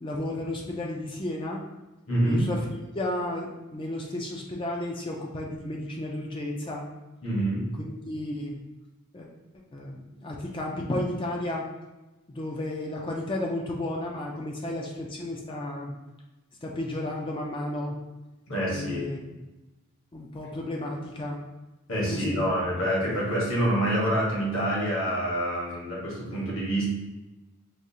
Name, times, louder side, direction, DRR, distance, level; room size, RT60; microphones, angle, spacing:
voice 1, 0.0-1.6 2.2-2.6 3.0-6.9 7.8-8.6 9.1-9.3 9.7-11.7 12.3-15.9 16.6-18.0 18.7-19.2 20.1-21.4 22.1-22.4, left 1 dB, 25° left, -1 dB, 0.4 m, -33 dB
voice 2, 2.1-2.5 7.2-7.7 18.5-19.0 21.9-26.9, right 1 dB, 65° left, -5 dB, 1.3 m, -26 dB
4.7 x 2.4 x 2.7 m, 1.1 s
head